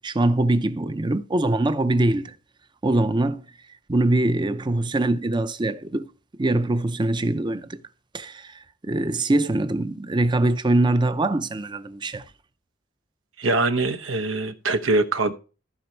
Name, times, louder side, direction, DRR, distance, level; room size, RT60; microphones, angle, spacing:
voice 1, 0.0-2.4 2.8-3.4 3.9-6.1 6.4-7.8 8.1-12.3, right 2 dB, 25° right, 0.6 m, -23 dB
voice 2, 13.4-15.3, right 2 dB, 80° right, 1.0 m, -23 dB
14.5 x 5.2 x 4.4 m
head